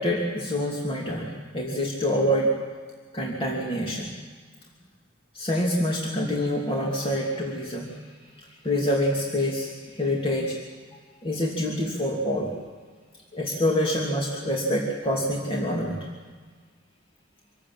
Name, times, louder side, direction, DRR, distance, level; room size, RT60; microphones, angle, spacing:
voice 1, 0.0-2.5 3.1-4.1 5.3-7.9 8.6-10.6 11.2-12.5 13.3-16.0, equal, 30° left, -2 dB, 2.8 m, -26 dB
26.0 x 14.5 x 8.9 m, 1.5 s
head